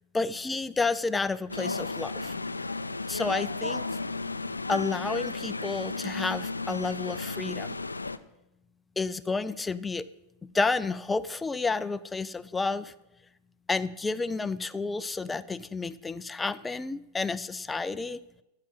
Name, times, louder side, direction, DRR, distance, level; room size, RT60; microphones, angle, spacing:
voice 1, 0.1-2.3 3.1-3.8 4.7-7.8 9.0-10.1 10.5-12.9 13.7-18.2, left 4 dB, 10° left, 14 dB, 0.5 m, -30 dB
sound 1, 1.5-8.2, left 3 dB, 80° left, 0.5 m, -34 dB
13.0 x 5.7 x 9.1 m, 0.92 s
figure-of-eight pair, 90°, 0 cm